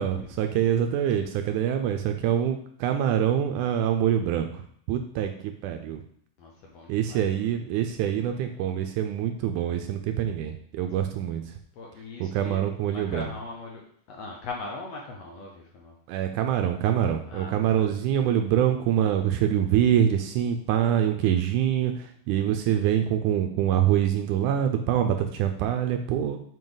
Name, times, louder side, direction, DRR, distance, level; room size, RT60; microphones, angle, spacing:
voice 1, 0.0-6.0 6.9-11.4 12.2-13.3 16.1-26.4, right 10 dB, 80° right, 6 dB, 1.9 m, -25 dB
voice 2, 6.4-7.5 11.7-12.7 12.9-13.8 14.1-15.9 17.3-17.9, left 3 dB, 65° left, -1 dB, 1.7 m, -40 dB
7.5 x 4.9 x 3.9 m, 0.63 s
omnidirectional pair, 3.8 m